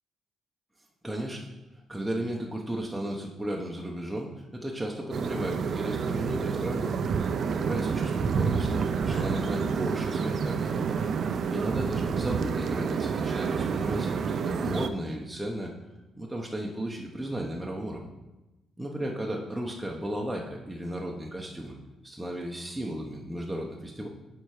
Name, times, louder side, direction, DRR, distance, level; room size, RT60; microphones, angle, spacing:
voice 1, 1.0-6.9 7.6-10.7 11.5-15.7 16.1-18.1 18.8-21.8 22.0-24.1, right 1 dB, 5° right, -2 dB, 0.9 m, -34 dB
sound 1, 5.1-14.9, right 6 dB, 60° right, 0.5 m, -29 dB
Clapping, 9.1-11.0, left 1 dB, 40° left, 2.2 m, -52 dB
7.1 x 4.6 x 4.9 m, 1.0 s
cardioid pair, 90°, 0 cm